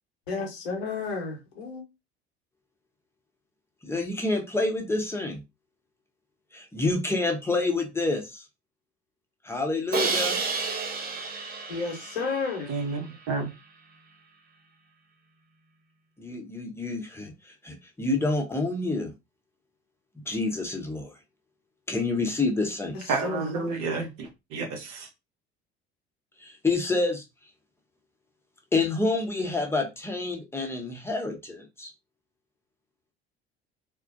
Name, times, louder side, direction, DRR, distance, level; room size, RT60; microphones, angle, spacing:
voice 1, 0.3-1.8 11.7-12.7 22.9-23.5, left 4 dB, 75° left, 0.9 m, -32 dB
voice 2, 3.8-5.4 6.5-8.4 9.4-10.4 16.2-19.1 20.3-21.1 21.9-23.0 26.4-27.2 28.7-31.9, left 3 dB, 10° left, 0.8 m, -28 dB
Crash cymbal, 9.9-13.0, right 4 dB, 30° right, 0.7 m, -31 dB
voice 3, 12.7-13.5 23.1-25.1, right 4 dB, 60° right, 0.9 m, -30 dB
2.4 x 2.1 x 2.5 m
figure-of-eight pair, 60°, 33 cm